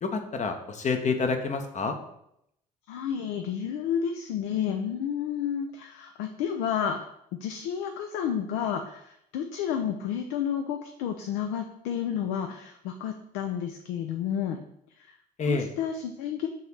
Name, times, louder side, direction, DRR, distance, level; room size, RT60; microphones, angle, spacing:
voice 1, 0.0-2.0 15.4-15.7, left 4 dB, 35° left, 6 dB, 0.7 m, -28 dB
voice 2, 2.9-7.0 7.3-14.6 15.0-16.5, left 8 dB, 70° left, 6 dB, 0.4 m, -31 dB
3.9 x 2.8 x 4.6 m, 0.78 s
hypercardioid pair, 55°, 21 cm